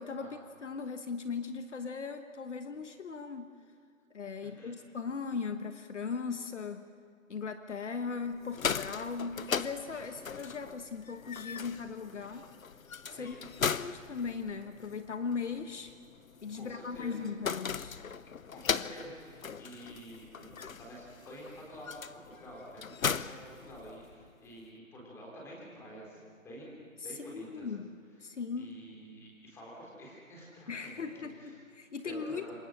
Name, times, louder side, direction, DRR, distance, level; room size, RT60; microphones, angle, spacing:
voice 1, 0.0-3.5 4.1-6.8 7.3-12.5 13.1-13.4 13.6-15.9 16.4-18.0 27.1-27.9 28.2-28.7 30.7-32.6, left 5 dB, 60° left, 8 dB, 1.3 m, -38 dB
voice 2, 4.4-4.7 13.1-13.7 16.5-17.3 18.5-27.7 28.6-31.6 32.0-32.6, equal, 5° left, -3 dB, 3.7 m, -49 dB
sound 1, 8.3-24.3, left 6 dB, 80° left, 0.9 m, -38 dB
27.5 x 24.0 x 6.4 m, 2.3 s
hypercardioid pair, 160°, 41 cm